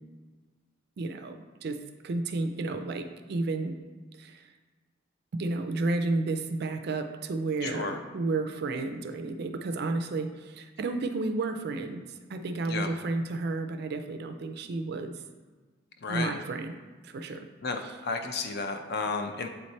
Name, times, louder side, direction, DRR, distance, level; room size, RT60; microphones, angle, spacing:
voice 1, 1.0-1.8 2.0-3.8 4.1-4.5 5.3-12.0 12.3-15.1 16.1-16.8 17.0-17.5 17.8-17.9, right 3 dB, 50° right, 8 dB, 0.4 m, -32 dB
voice 2, 7.6-8.0 12.7-12.9 16.0-16.4 17.6-19.5, left 4 dB, 50° left, 6 dB, 0.5 m, -32 dB
7.7 x 3.2 x 4.1 m, 1.4 s
head